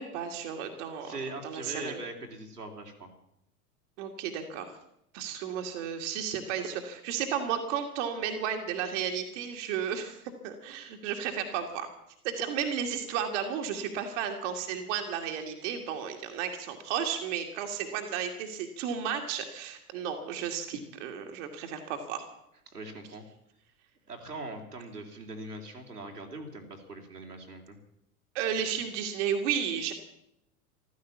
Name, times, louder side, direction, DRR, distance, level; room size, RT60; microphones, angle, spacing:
voice 1, 0.0-2.0 4.0-4.8 5.1-11.9 12.2-22.2 28.3-29.9, right 8 dB, 50° right, 5 dB, 2.2 m, -33 dB
voice 2, 1.0-3.1 22.7-23.2 24.1-27.8, right 2 dB, 80° right, 1 dB, 3.0 m, -41 dB
14.5 x 14.0 x 7.2 m, 0.79 s
figure-of-eight pair, 85°, 46 cm